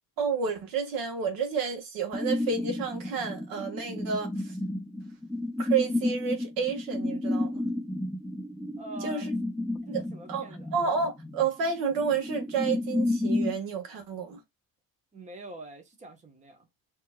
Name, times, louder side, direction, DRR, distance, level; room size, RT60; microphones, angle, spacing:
voice 1, 0.2-4.6 5.6-7.6 9.0-9.3 9.9-10.0 10.3-14.4, right 6 dB, 70° right, 1.4 m, -30 dB
sound 1, 2.1-13.6, left 2 dB, ahead, 0.3 m, -32 dB
voice 2, 8.8-9.3 9.9-10.7 15.1-16.7, right 2 dB, 20° right, 1.1 m, -45 dB
4.3 x 3.0 x 2.3 m
cardioid pair, 135°, 36 cm